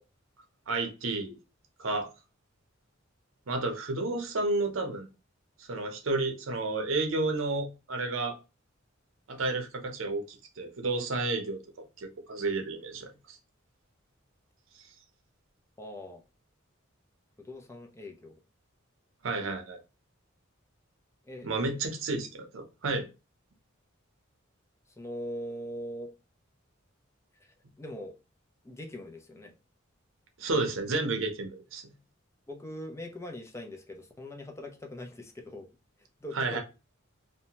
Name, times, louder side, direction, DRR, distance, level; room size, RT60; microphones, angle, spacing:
voice 1, 0.7-1.3 1.8-2.1 3.5-5.1 5.7-8.4 9.3-11.6 12.0-13.4 19.2-19.8 21.4-23.1 30.4-31.8 36.3-36.6, right 3 dB, 70° right, 0.7 m, -31 dB
voice 2, 15.8-16.2 17.4-18.4 21.3-21.5 25.0-26.1 27.8-28.2 28.6-29.5 32.5-35.7 36.2-36.6, left 1 dB, 15° left, 0.4 m, -41 dB
2.7 x 2.1 x 2.8 m
head